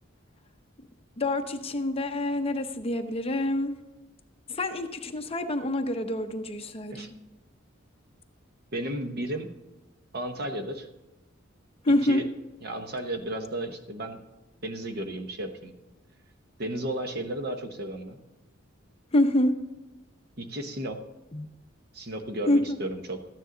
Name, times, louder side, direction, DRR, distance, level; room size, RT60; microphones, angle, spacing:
voice 1, 1.2-3.7 4.5-7.1 11.8-12.2 19.1-19.5 21.3-21.5 22.5-22.8, left 1 dB, 30° left, 7 dB, 0.7 m, -26 dB
voice 2, 8.7-9.5 10.1-10.9 12.0-12.2 12.6-14.2 14.6-15.7 16.6-18.2 20.4-21.0 21.9-23.2, right 1 dB, 55° right, 6 dB, 1.0 m, -33 dB
13.5 x 9.4 x 3.9 m, 1.0 s
head